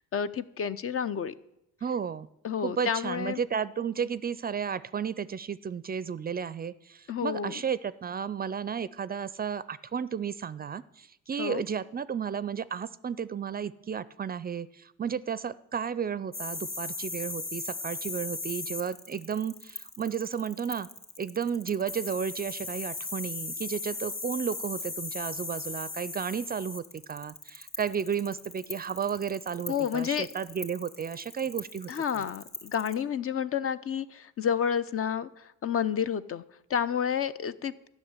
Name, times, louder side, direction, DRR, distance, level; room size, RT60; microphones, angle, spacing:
voice 1, 0.1-1.3 2.4-3.4 7.1-7.6 11.4-11.6 29.7-30.3 31.9-35.3 35.6-36.4 36.7-37.7, left 8 dB, 45° left, 14 dB, 0.6 m, -30 dB
voice 2, 1.8-2.3 2.6-20.9 21.2-32.3, right 7 dB, 30° right, 17 dB, 0.4 m, -33 dB
sound 1, 16.3-32.9, left 3 dB, 30° left, 2.3 m, -38 dB
12.5 x 6.5 x 9.7 m, 0.85 s
cardioid pair, 90°, 30 cm